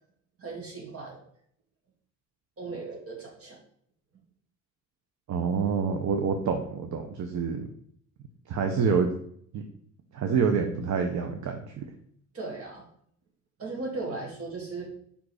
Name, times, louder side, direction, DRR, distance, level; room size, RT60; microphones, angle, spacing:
voice 1, 0.4-1.2 2.6-3.6 12.3-12.9 13.6-14.9, right 3 dB, 50° right, 0 dB, 2.5 m, -37 dB
voice 2, 5.3-7.7 8.5-9.1 9.5-9.6 10.1-11.8, right 5 dB, 65° right, 5 dB, 0.9 m, -27 dB
5.2 x 5.1 x 4.9 m, 0.65 s
cardioid pair, 90°, 30 cm